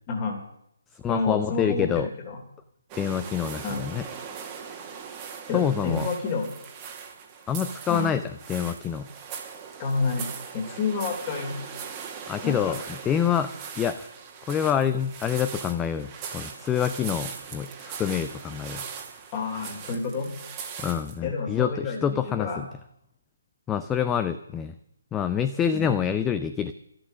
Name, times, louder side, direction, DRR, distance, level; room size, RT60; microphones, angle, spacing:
voice 1, 0.1-0.4 1.1-2.4 3.6-3.9 5.5-6.5 7.9-8.1 9.8-11.6 12.4-12.7 19.3-20.3 21.2-22.6 25.7-25.9, left 4 dB, 25° left, 2 dB, 3.0 m, -29 dB
voice 2, 0.9-2.1 3.0-4.1 5.5-6.1 7.5-8.2 8.5-9.1 12.3-14.1 14.5-18.9 20.8-22.7 23.7-24.7 25.1-26.7, left 8 dB, 10° left, 11 dB, 0.5 m, -27 dB
sound 1, 2.9-21.2, right 7 dB, 20° right, 1.7 m, -40 dB
13.0 x 11.5 x 6.4 m, 0.79 s
figure-of-eight pair, 145°, 0 cm